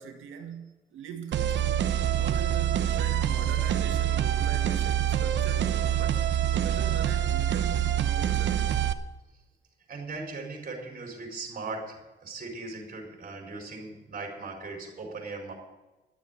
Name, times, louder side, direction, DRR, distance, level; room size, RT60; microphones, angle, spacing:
voice 1, 0.0-1.7 2.1-6.2 6.5-8.8, right 7 dB, 80° right, 2.0 m, -41 dB
sound 1, 1.3-8.9, right 10 dB, 65° right, 0.9 m, -26 dB
voice 2, 9.9-15.5, right 3 dB, 40° right, 4.5 m, -39 dB
12.5 x 7.3 x 9.7 m
cardioid pair, 90°, 20 cm